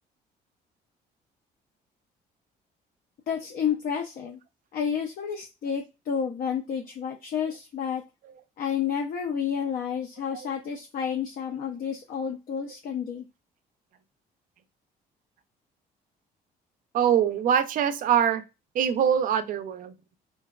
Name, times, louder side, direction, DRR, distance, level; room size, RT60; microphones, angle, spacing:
voice 1, 3.3-4.4 4.7-8.0 8.6-13.2, left 7 dB, 55° left, 1 dB, 0.5 m, -30 dB
voice 2, 16.9-18.4 18.7-19.9, right 8 dB, 55° right, 10 dB, 0.4 m, -23 dB
2.6 x 2.1 x 2.2 m, 0.26 s
cardioid pair, 110°, 17 cm